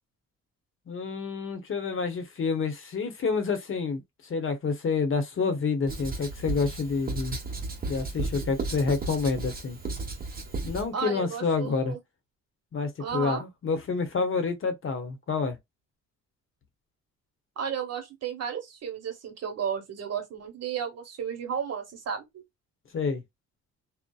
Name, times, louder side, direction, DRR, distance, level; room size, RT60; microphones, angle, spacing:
voice 1, 0.9-4.0 4.3-7.4 7.9-9.8 10.6-12.0 12.7-15.6 22.9-23.2, left 4 dB, 45° left, 0.8 m, -28 dB
Writing, 5.9-10.9, right 3 dB, 30° right, 1.0 m, -34 dB
voice 2, 10.9-12.0 13.0-13.4 17.6-22.4, right 7 dB, 55° right, 1.1 m, -33 dB
2.7 x 2.1 x 2.2 m
cardioid pair, 90°, 30 cm